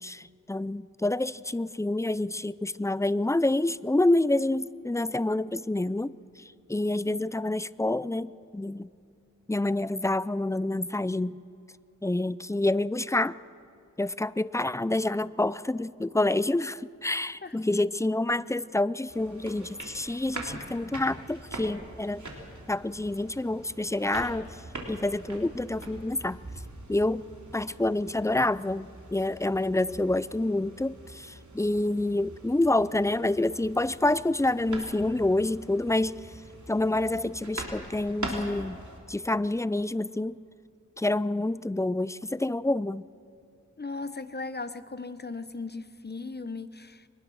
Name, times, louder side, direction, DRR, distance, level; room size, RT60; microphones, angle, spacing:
voice 1, 0.0-6.1 6.7-8.9 9.5-11.4 12.0-13.4 14.0-22.2 22.7-24.5 24.9-26.4 26.9-27.3 27.5-36.2 36.7-38.8 39.1-40.3 41.0-43.0, left 2 dB, 10° left, 18 dB, 0.4 m, -27 dB
sound 1, 19.1-39.0, right 2 dB, 60° right, 3.6 m, -43 dB
voice 2, 43.8-47.1, left 3 dB, 30° left, 13 dB, 1.0 m, -37 dB
23.5 x 20.0 x 6.3 m, 2.5 s
wide cardioid pair, 45°, 32 cm